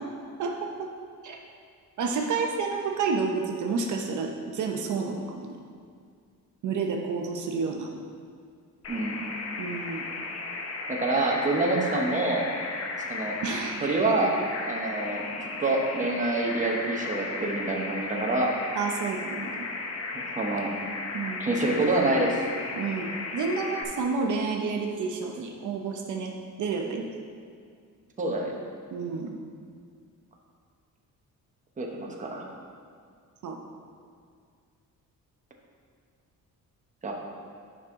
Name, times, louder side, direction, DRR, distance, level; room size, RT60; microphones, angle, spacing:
voice 1, 0.4-0.9 1.2-1.4 2.0-5.5 6.6-7.9 9.6-10.1 13.4-13.8 18.7-19.7 21.1-21.5 22.8-26.3 26.6-27.0 28.9-29.4 33.4-33.6, right 4 dB, 60° right, 2 dB, 0.7 m, -30 dB
sound 1, 8.8-23.8, left 3 dB, 45° left, 0.8 m, -35 dB
voice 2, 10.9-12.5 13.1-13.4 13.8-14.3 14.7-18.5 20.1-20.7 21.4-22.4 28.2-28.5 31.8-32.4 37.0-37.1, right 2 dB, 25° right, 0 dB, 0.9 m, -26 dB
9.4 x 5.4 x 3.6 m, 2.1 s
cardioid pair, 150°, 33 cm